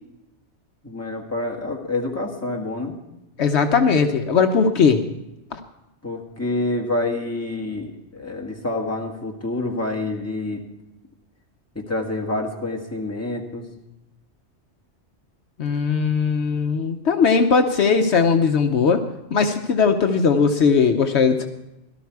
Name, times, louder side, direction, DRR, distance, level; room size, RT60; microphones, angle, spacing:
voice 1, 0.8-3.0 6.0-10.6 11.8-13.7, left 2 dB, 10° left, 1 dB, 1.7 m, -27 dB
voice 2, 3.4-5.0 5.5-5.6 15.6-19.0 19.3-21.5, left 5 dB, 70° left, 6 dB, 1.0 m, -19 dB
17.5 x 12.5 x 4.7 m, 0.93 s
omnidirectional pair, 1.2 m